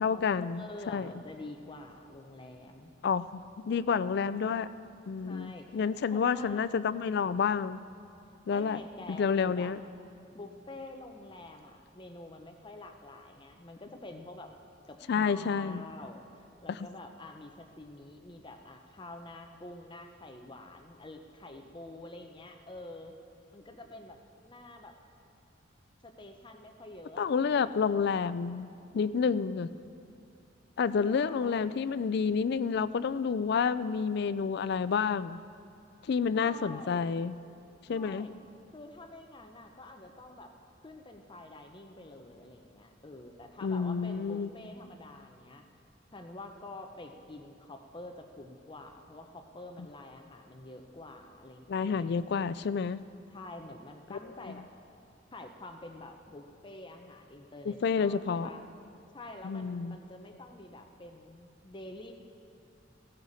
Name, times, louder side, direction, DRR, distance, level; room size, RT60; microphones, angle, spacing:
voice 1, 0.0-1.1 3.0-4.7 5.1-7.8 8.5-8.8 9.1-9.8 15.1-15.8 16.7-16.8 27.2-29.7 30.8-35.4 36.1-37.4 37.9-38.3 43.6-44.5 51.7-53.0 54.1-54.2 54.5-54.6 57.7-58.5 59.4-60.0, left 6 dB, 60° left, 15 dB, 0.4 m, -29 dB
voice 2, 0.6-2.9 5.2-5.8 6.1-6.6 8.5-9.7 10.3-14.5 14.9-23.1 23.5-24.9 26.0-28.0 30.9-31.8 36.3-37.2 37.9-38.4 38.7-40.5 40.8-45.7 46.1-52.1 53.3-54.7 55.3-58.6 59.1-62.1, left 2 dB, 25° left, 4 dB, 0.7 m, -47 dB
15.0 x 14.0 x 4.1 m, 2.5 s
head